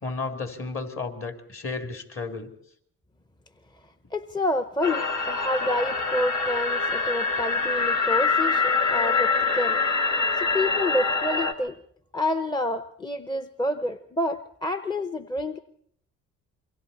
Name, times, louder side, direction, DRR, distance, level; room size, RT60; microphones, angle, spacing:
voice 1, 0.0-2.5, left 4 dB, 45° left, 5 dB, 3.1 m, -33 dB
voice 2, 4.1-9.8 10.3-11.8 12.1-15.6, left 1 dB, 15° left, 10 dB, 0.8 m, -28 dB
sound 1, 4.8-11.5, left 4 dB, 75° left, 2.1 m, -25 dB
27.5 x 23.0 x 4.3 m, 0.66 s
cardioid pair, 85°, 31 cm